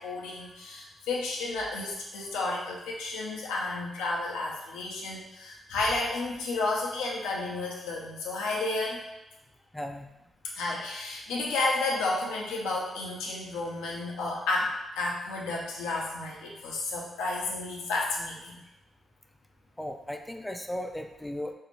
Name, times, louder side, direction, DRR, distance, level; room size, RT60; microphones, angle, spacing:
voice 1, 0.0-9.1 10.5-18.6, left 2 dB, 90° left, -3 dB, 0.5 m, -32 dB
voice 2, 9.7-10.1 19.8-21.5, left 1 dB, 10° left, 5 dB, 0.3 m, -36 dB
2.6 x 2.0 x 2.9 m, 0.94 s
supercardioid pair, 45°, 0 cm